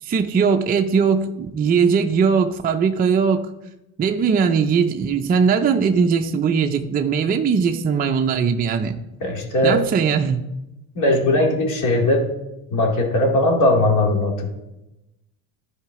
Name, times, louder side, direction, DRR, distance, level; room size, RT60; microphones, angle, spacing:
voice 1, 0.0-3.5 4.0-9.0 9.6-10.4, right 6 dB, 25° right, 4 dB, 0.5 m, -19 dB
voice 2, 9.2-9.8 11.0-12.3 12.7-14.5, left 1 dB, 50° left, 1 dB, 2.5 m, -19 dB
12.0 x 5.0 x 4.7 m, 0.93 s
supercardioid pair, 115°, 40 cm